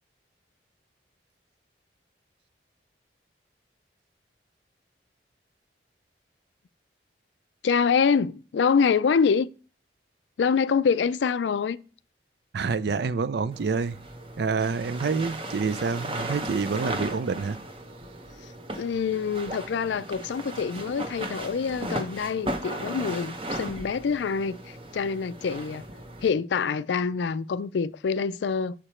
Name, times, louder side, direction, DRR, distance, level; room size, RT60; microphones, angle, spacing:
voice 1, 7.6-9.5 10.4-11.8 18.8-25.8 26.2-28.7, left 6 dB, 75° left, 0.4 m, -25 dB
voice 2, 12.5-14.0 14.4-17.6, right 5 dB, 65° right, 0.4 m, -27 dB
sound 1, 13.5-26.3, right 1 dB, 30° right, 0.8 m, -36 dB
7.2 x 4.9 x 4.3 m
head